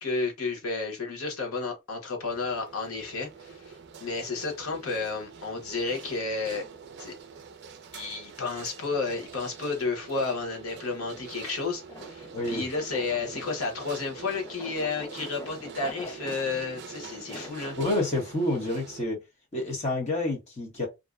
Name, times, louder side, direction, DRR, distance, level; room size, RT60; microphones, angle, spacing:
voice 1, 0.0-6.6 7.0-7.1 7.9-17.8, left 4 dB, 85° left, 0.9 m, -32 dB
sound 1, 2.3-19.0, right 6 dB, 50° right, 0.4 m, -45 dB
sound 2, 11.0-17.8, left 2 dB, 15° left, 0.3 m, -46 dB
voice 2, 12.3-12.7 17.8-19.2 19.5-20.9, left 1 dB, 30° left, 0.8 m, -28 dB
2.5 x 2.1 x 2.3 m
head